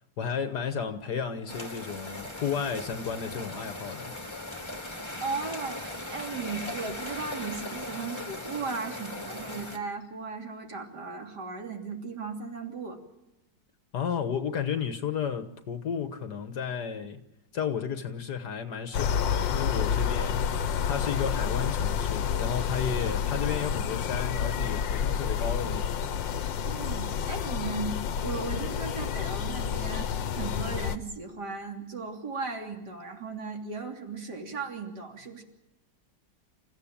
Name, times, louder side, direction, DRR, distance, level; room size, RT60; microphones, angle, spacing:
voice 1, 0.2-4.1 13.9-17.2 17.5-20.6 20.8-26.0, left 7 dB, 65° left, 1.7 m, -33 dB
sound 1, 1.5-9.8, left 1 dB, 15° left, 2.4 m, -39 dB
voice 2, 5.2-13.0 26.6-35.4, right 4 dB, 65° right, 3.7 m, -36 dB
sound 2, 18.9-31.0, left 7 dB, 90° left, 1.7 m, -29 dB
29.0 x 15.5 x 8.7 m
omnidirectional pair, 1.9 m